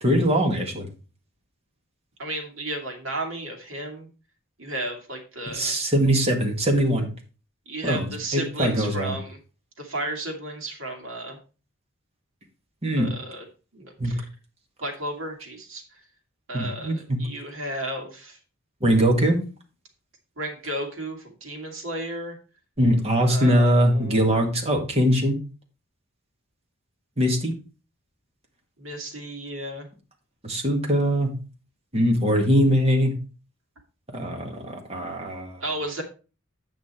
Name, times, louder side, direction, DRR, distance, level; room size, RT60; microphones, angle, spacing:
voice 1, 0.0-0.9 5.5-7.1 7.8-9.2 12.8-13.1 14.0-14.1 16.5-17.2 18.8-19.4 22.8-25.4 27.2-27.5 30.4-31.3 31.9-33.1 34.1-35.6, equal, 30° right, 2 dB, 1.9 m, -22 dB
voice 2, 2.2-4.1 4.6-5.8 7.7-9.4 9.8-11.4 13.0-13.4 13.7-14.2 14.8-15.8 16.5-18.4 20.4-22.4 23.3-24.4 28.8-29.9 35.6-36.0, right 1 dB, 70° right, 1 dB, 2.5 m, -33 dB
8.8 x 5.9 x 4.4 m, 0.34 s
head